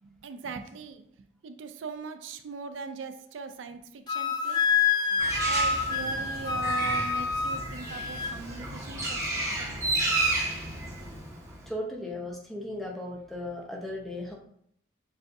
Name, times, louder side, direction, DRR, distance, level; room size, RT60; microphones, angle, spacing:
voice 1, 0.0-1.1 1.4-4.6 5.1-5.2 5.5-9.8, right 5 dB, 85° right, 8 dB, 0.4 m, -40 dB
Wind instrument woodwind instrument, 4.1-8.4, left 4 dB, 20° left, 0.3 m, -27 dB
Bird, 5.2-11.7, right 2 dB, 15° right, 1.0 m, -32 dB
voice 2, 11.7-14.3, left 1 dB, ahead, -3 dB, 0.7 m, -36 dB
6.8 x 2.6 x 2.6 m, 0.67 s
head